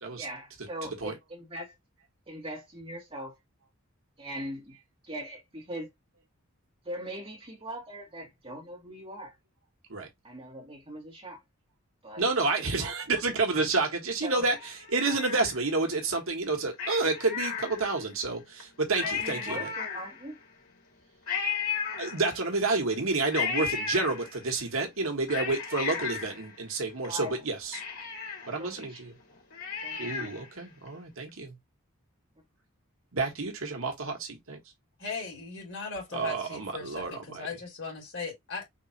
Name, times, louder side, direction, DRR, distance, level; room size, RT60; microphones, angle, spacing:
voice 1, 0.1-1.7 2.3-3.4 4.2-4.7 5.0-5.9 6.8-9.3 10.2-11.4 12.0-12.2 12.6-12.9 14.2-14.5 19.0-20.4 27.0-27.4 28.6-29.2 29.8-30.3, equal, 25° right, 1.9 m, -40 dB
voice 2, 0.8-1.1 9.9-10.1 12.2-19.7 22.0-27.8 28.5-29.1 30.0-31.5 33.1-34.6 36.1-37.5, right 3 dB, 70° right, 1.5 m, -29 dB
Cat, 14.4-15.9 16.7-18.1 18.6-18.7 18.9-20.4 21.3-22.6 23.3-24.6 25.0-27.1 27.4-27.5 27.7-30.5 30.9-31.0, left 6 dB, 80° left, 3.0 m, -35 dB
voice 3, 35.0-38.7, left 4 dB, 55° left, 2.9 m, -38 dB
5.1 x 3.1 x 2.9 m
head